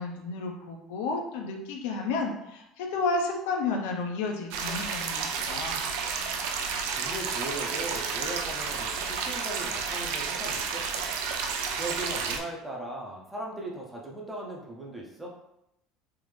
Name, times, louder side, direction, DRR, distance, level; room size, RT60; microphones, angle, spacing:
voice 1, 0.0-5.8, left 3 dB, 85° left, 2 dB, 0.6 m, -31 dB
sound 1, 4.5-12.4, right 5 dB, 75° right, 0.4 m, -31 dB
voice 2, 7.0-11.1 11.7-15.4, right 1 dB, 5° right, -3 dB, 0.5 m, -38 dB
3.5 x 2.6 x 3.2 m, 0.83 s
cardioid pair, 170°, 0 cm